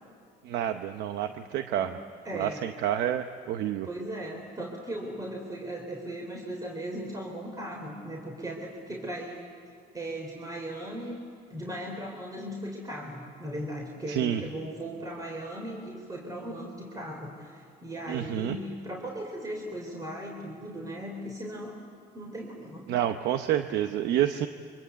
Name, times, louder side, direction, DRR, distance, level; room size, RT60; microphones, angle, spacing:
voice 1, 0.4-2.0 2.3-3.9 14.1-14.4 18.1-18.6 22.9-24.5, right 11 dB, 80° right, 8 dB, 0.9 m, -28 dB
voice 2, 2.2-2.7 3.8-9.4 9.9-11.2 11.5-21.8 22.1-22.9, right 1 dB, 20° right, 1 dB, 3.6 m, -37 dB
25.5 x 25.0 x 8.2 m, 2.3 s
cardioid pair, 110°, 17 cm